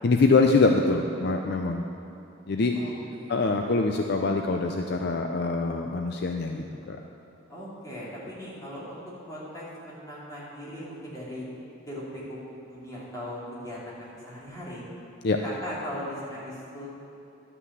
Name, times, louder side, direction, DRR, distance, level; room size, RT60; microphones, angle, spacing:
voice 1, 0.0-1.8 2.5-2.7 3.3-7.0 15.2-15.4, left 3 dB, 55° left, 3 dB, 0.5 m, -24 dB
voice 2, 2.7-3.5 7.5-9.0 9.3-11.5 11.9-14.8 15.4-16.9, equal, 15° left, -8 dB, 2.9 m, -39 dB
11.0 x 5.9 x 8.0 m, 2.6 s
head